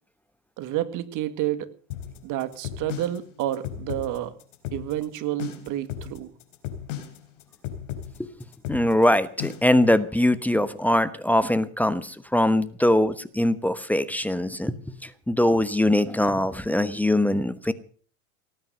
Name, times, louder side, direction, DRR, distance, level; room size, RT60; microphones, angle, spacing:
voice 1, 0.6-1.7 2.2-4.3 4.7-6.3, right 13 dB, 50° right, 11 dB, 2.1 m, -29 dB
sound 1, 1.9-9.8, left 10 dB, 70° left, 4.3 m, -35 dB
voice 2, 8.7-14.7 15.0-17.7, left 1 dB, 5° left, 13 dB, 1.1 m, -22 dB
18.5 x 9.4 x 6.8 m, 0.43 s
hypercardioid pair, 100°, 39 cm